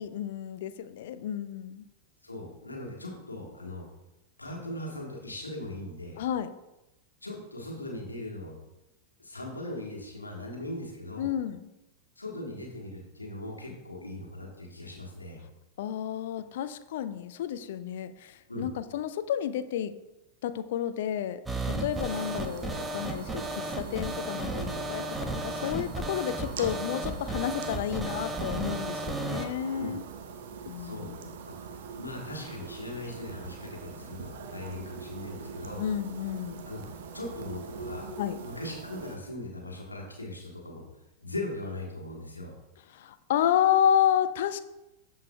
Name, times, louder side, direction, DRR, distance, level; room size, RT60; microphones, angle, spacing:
voice 1, 0.0-1.8 6.2-6.5 11.2-11.7 15.8-19.9 20.4-30.0 30.7-31.4 35.8-36.6 38.2-38.4 42.9-44.6, left 10 dB, 55° left, 12 dB, 0.4 m, -30 dB
voice 2, 2.2-3.9 4.4-6.2 7.2-8.5 9.2-11.3 12.2-15.4 18.5-18.7 21.7-21.9 25.5-25.8 29.7-30.0 30.8-31.2 31.4-35.9 36.6-36.8 37.1-38.1 38.4-40.8 41.2-42.5, left 1 dB, 80° left, -1 dB, 1.4 m, -39 dB
sound 1, 21.5-29.5, right 2 dB, 10° right, 0.8 m, -34 dB
sound 2, 21.9-39.2, right 6 dB, 55° right, 0.7 m, -43 dB
12.5 x 4.7 x 2.3 m, 0.96 s
figure-of-eight pair, 90°, 0 cm